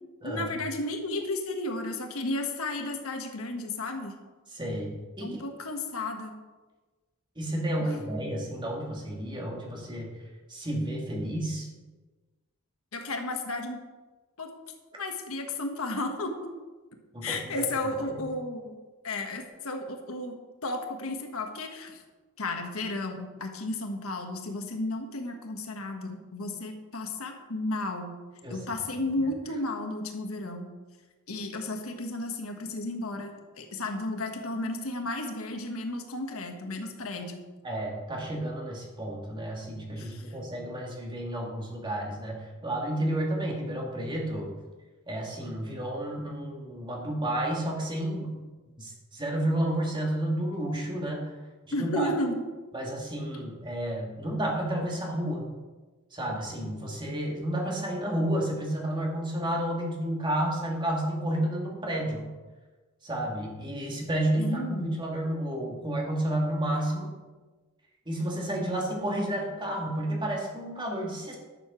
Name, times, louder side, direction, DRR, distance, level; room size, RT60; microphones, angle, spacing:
voice 1, 0.2-4.1 5.2-6.3 7.9-8.0 12.9-13.8 14.4-14.5 15.0-16.5 17.2-18.8 19.0-20.3 20.6-22.0 22.4-28.1 28.5-30.7 31.3-37.4 40.0-40.4 51.7-52.4 64.4-64.9, left 2 dB, 75° left, 4 dB, 1.4 m, -33 dB
voice 2, 4.5-5.4 7.4-10.1 10.5-11.7 17.1-17.7 18.1-18.2 28.4-28.6 37.6-44.5 45.1-48.4 48.8-51.3 51.7-52.1 52.7-55.5 56.1-62.2 63.0-67.1 68.1-71.4, right 1 dB, 20° right, -1 dB, 2.1 m, -31 dB
11.0 x 6.8 x 6.1 m, 1.3 s
head